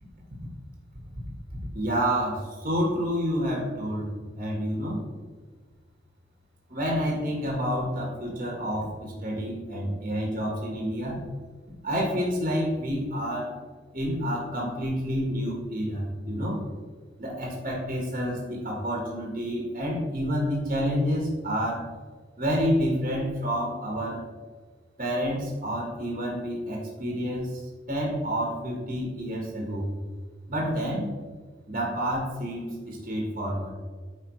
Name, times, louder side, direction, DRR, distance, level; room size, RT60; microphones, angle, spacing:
voice 1, 1.7-4.1 4.4-5.0 6.7-11.2 11.8-13.5 13.9-16.6 17.2-21.9 22.4-24.2 25.0-27.6 27.9-29.9 30.5-31.1 31.7-33.7, equal, 40° right, -2 dB, 1.4 m, -29 dB
8.2 x 5.1 x 3.1 m, 1.5 s
head